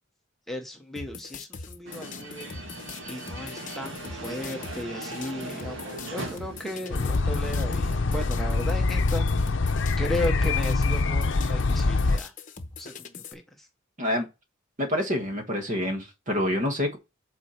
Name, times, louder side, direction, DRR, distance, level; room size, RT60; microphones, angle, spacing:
voice 1, 0.5-2.5 3.1-9.3 10.0-12.3 12.8-13.7, left 1 dB, ahead, 0.9 m, -35 dB
sound 1, 1.0-13.3, left 4 dB, 40° left, 1.0 m, -42 dB
sound 2, 1.8-8.9, right 1 dB, 65° right, 1.8 m, -40 dB
sound 3, 6.9-12.2, left 3 dB, 65° left, 0.6 m, -24 dB
voice 2, 14.8-17.0, left 1 dB, 40° right, 1.6 m, -27 dB
8.2 x 4.3 x 4.3 m
head